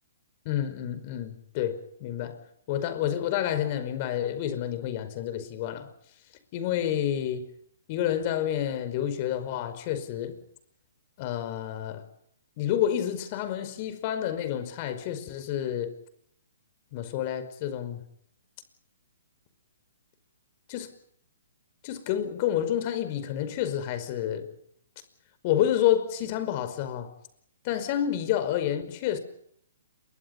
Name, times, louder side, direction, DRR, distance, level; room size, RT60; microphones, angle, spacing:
voice 1, 0.4-2.4 2.7-5.9 6.5-7.5 7.9-10.4 11.2-12.0 12.6-16.0 16.9-18.0 20.7-20.9 21.8-24.5 25.4-27.1 27.6-29.2, left 10 dB, 40° left, 5.2 m, -29 dB
28.5 x 24.0 x 5.5 m
hypercardioid pair, 140°, 0 cm